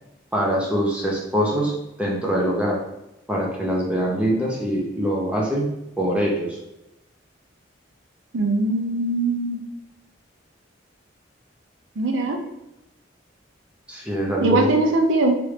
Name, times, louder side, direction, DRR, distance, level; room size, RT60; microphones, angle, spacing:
voice 1, 0.3-1.7 2.0-2.8 3.3-6.6 13.9-14.7, equal, 5° right, -3 dB, 0.5 m, -23 dB
voice 2, 8.3-9.6 12.0-12.4 14.4-15.4, right 2 dB, 80° right, 4 dB, 0.5 m, -21 dB
3.1 x 2.5 x 3.2 m, 0.90 s
head